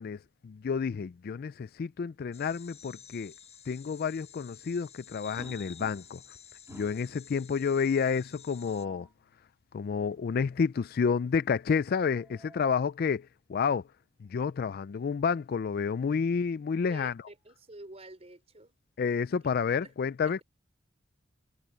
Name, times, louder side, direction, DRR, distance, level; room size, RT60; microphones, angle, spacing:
voice 1, 0.0-3.3 3.7-6.2 6.7-9.1 9.7-13.8 14.2-17.1 19.0-20.4, left 6 dB, 50° left, 0.3 m, -30 dB
sound 1, 2.3-8.8, left 8 dB, 30° left, 7.5 m, -52 dB
sound 2, 5.4-6.3 6.7-7.2 8.4-9.1 11.8-12.8 14.2-14.4 14.8-14.9 16.4-17.7, right 1 dB, 15° right, 3.6 m, -55 dB
voice 2, 16.9-18.7 19.8-19.9 20.2-20.3, right 2 dB, 30° right, 4.1 m, -48 dB
head